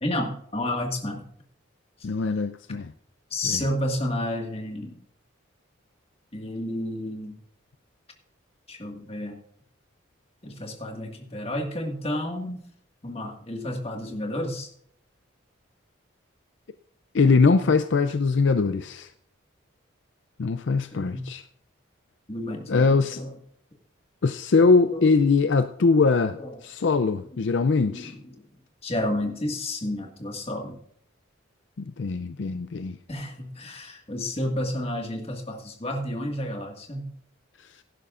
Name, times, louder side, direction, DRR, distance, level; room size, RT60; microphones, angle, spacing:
voice 1, 0.0-1.2 2.0-2.1 3.3-5.0 6.3-7.4 8.7-9.4 10.4-12.6 13.0-14.7 17.6-17.7 20.9-21.3 22.3-23.3 24.9-25.2 26.4-26.5 27.8-28.2 28.8-30.8 33.1-37.1, left 1 dB, 30° left, 1.8 m, -31 dB
voice 2, 2.0-2.9 3.4-3.7 17.1-19.1 20.4-21.4 22.7-23.2 24.2-28.1 31.8-33.0, left 4 dB, 60° left, 0.4 m, -22 dB
17.0 x 11.0 x 2.5 m
head